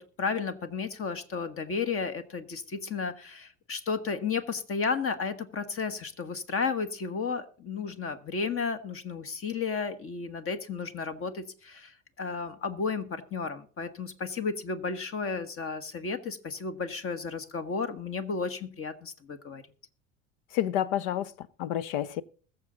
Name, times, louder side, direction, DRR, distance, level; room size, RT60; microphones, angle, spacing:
voice 1, 0.0-19.6, left 5 dB, 35° left, 1.5 m, -33 dB
voice 2, 20.5-22.2, left 11 dB, 65° left, 0.8 m, -30 dB
21.0 x 7.0 x 3.9 m
hypercardioid pair, 70°, 38 cm